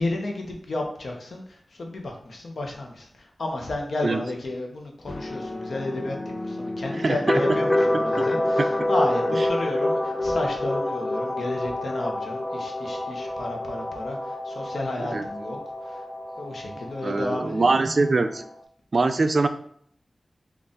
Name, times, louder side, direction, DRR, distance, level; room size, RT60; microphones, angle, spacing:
voice 1, 0.0-6.2 6.4-15.6 15.8-16.0 16.4-17.7, left 2 dB, 80° left, 1 dB, 0.7 m, -32 dB
sound 1, 5.1-18.6, left 1 dB, 30° left, 0.3 m, -28 dB
voice 2, 7.0-7.6 8.6-8.7 15.0-15.3 17.0-18.4 18.9-19.5, right 3 dB, 60° right, 9 dB, 0.3 m, -23 dB
3.9 x 2.4 x 3.7 m, 0.63 s
cardioid pair, 50°, 0 cm